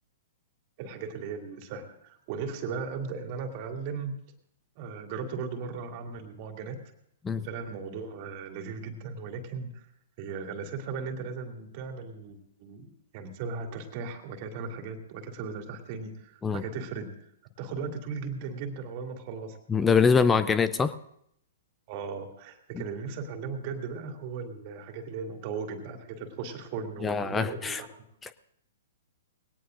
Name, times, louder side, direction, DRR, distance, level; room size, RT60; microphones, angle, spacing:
voice 1, 0.8-4.1 4.8-6.8 7.4-9.9 10.2-17.1 17.6-19.6 20.2-20.6 21.9-27.9, right 5 dB, 40° right, 3 dB, 2.5 m, -37 dB
voice 2, 19.7-20.9 22.8-22.9 27.0-27.8, left 5 dB, 15° left, 14 dB, 0.5 m, -24 dB
21.0 x 18.0 x 2.6 m, 0.72 s
figure-of-eight pair, 115°, 0 cm